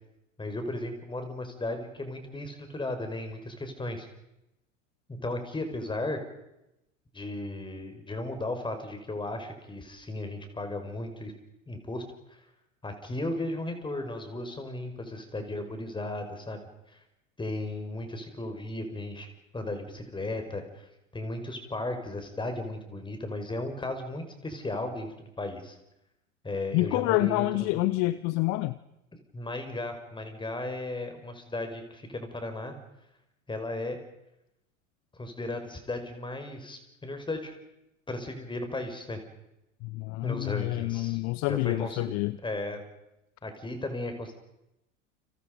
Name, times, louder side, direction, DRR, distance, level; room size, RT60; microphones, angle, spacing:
voice 1, 0.4-4.1 5.1-6.2 7.1-11.3 11.7-12.4 12.8-16.6 16.9-17.0 17.4-19.3 19.5-25.8 26.4-27.9 29.3-32.7 33.5-34.0 35.1-37.5 38.1-39.2 40.2-41.2 41.5-42.0 42.4-42.8 43.4-44.3, left 2 dB, 10° left, 6 dB, 5.5 m, -35 dB
voice 2, 26.7-28.8 39.8-42.4, left 19 dB, 45° left, 17 dB, 1.0 m, -27 dB
30.0 x 27.5 x 5.4 m, 0.89 s
figure-of-eight pair, 80°, 38 cm